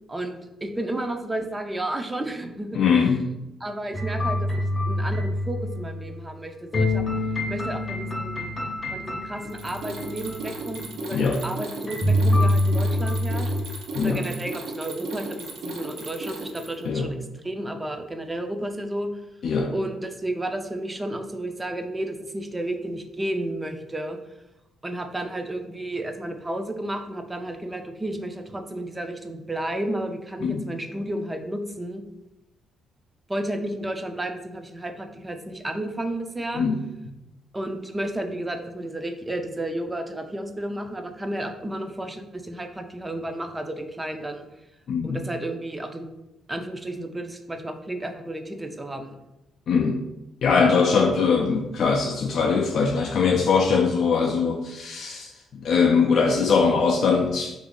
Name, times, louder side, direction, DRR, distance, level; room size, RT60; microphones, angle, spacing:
voice 1, 0.1-2.9 3.6-7.0 7.5-8.5 8.9-13.5 14.0-17.2 17.4-19.1 19.7-24.2 24.8-32.0 33.3-36.6 37.5-44.4 45.0-46.1 46.5-49.2, right 1 dB, 15° right, 6 dB, 0.4 m, -32 dB
voice 2, 2.7-3.4 11.1-11.4 13.9-14.2 16.9-17.1 19.4-19.7 30.4-30.6 36.5-36.9 44.9-45.2 49.7-50.0 50.4-57.5, left 5 dB, 60° left, 1 dB, 0.3 m, -21 dB
sound 1, 3.9-6.1 6.7-11.1 11.9-13.6, left 1 dB, 30° left, 0.6 m, -26 dB
Mechanisms, 9.4-16.9, right 2 dB, 75° right, 0.6 m, -35 dB
2.8 x 2.5 x 3.7 m, 0.93 s
cardioid pair, 90°, 0 cm